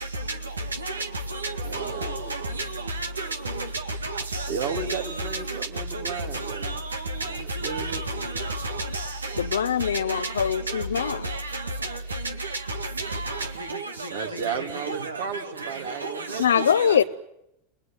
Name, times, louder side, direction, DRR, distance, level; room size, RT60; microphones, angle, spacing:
voice 1, 1.6-2.5 4.5-6.8 7.3-8.0 14.1-17.0, right 6 dB, 70° right, 3.4 m, -34 dB
voice 2, 4.0-5.6 6.0-6.2 6.5-6.7 7.2-7.3 7.6-9.1 10.1-10.3 11.2-11.6 12.1-12.5 13.0-14.6 14.9-15.1 16.0-16.2 16.6-17.0, right 2 dB, 90° right, 2.0 m, -31 dB
voice 3, 9.4-11.2 16.4-17.0, left 8 dB, 80° left, 0.9 m, -23 dB
30.0 x 19.0 x 7.9 m
hypercardioid pair, 90°, 0 cm